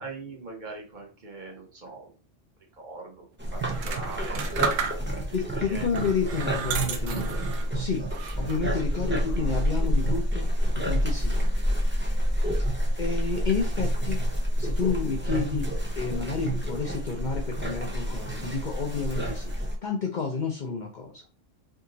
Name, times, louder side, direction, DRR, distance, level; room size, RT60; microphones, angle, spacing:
voice 1, 0.0-2.1 2.8-5.2 5.6-5.9 6.6-7.5 9.1-9.4, right 3 dB, 40° right, 1 dB, 1.0 m, -42 dB
sound 1, 3.4-19.8, equal, 15° right, 0.4 m, -28 dB
sound 2, 3.6-5.3 5.9-7.7 8.1-8.7, right 6 dB, 80° right, 1.0 m, -33 dB
voice 2, 5.3-7.4 7.7-8.0 8.4-10.5 10.8-11.5 13.0-14.2 14.6-15.7 16.0-19.5 19.8-21.2, left 5 dB, 55° left, 1 dB, 0.6 m, -30 dB
2.8 x 2.6 x 3.8 m, 0.38 s
omnidirectional pair, 1.3 m